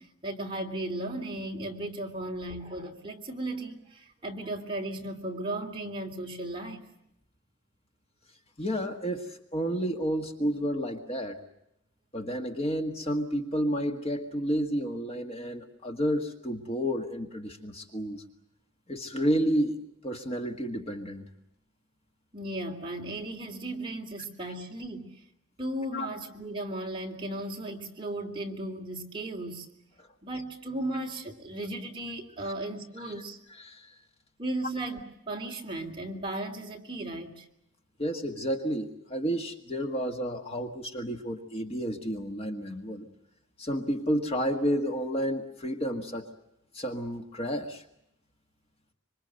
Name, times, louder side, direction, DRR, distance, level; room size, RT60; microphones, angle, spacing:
voice 1, 0.0-6.9 22.3-25.2 25.6-29.7 30.2-33.4 34.4-35.0 35.3-37.4, right 1 dB, 25° right, 1 dB, 3.0 m, -36 dB
voice 2, 8.6-11.4 12.1-18.2 18.9-19.8 20.0-21.3 25.9-26.1 30.0-30.1 33.0-33.1 33.5-34.0 38.0-43.1 43.6-46.3 46.7-47.8, equal, 30° left, 4 dB, 1.6 m, -31 dB
26.0 x 24.5 x 7.9 m, 0.81 s
head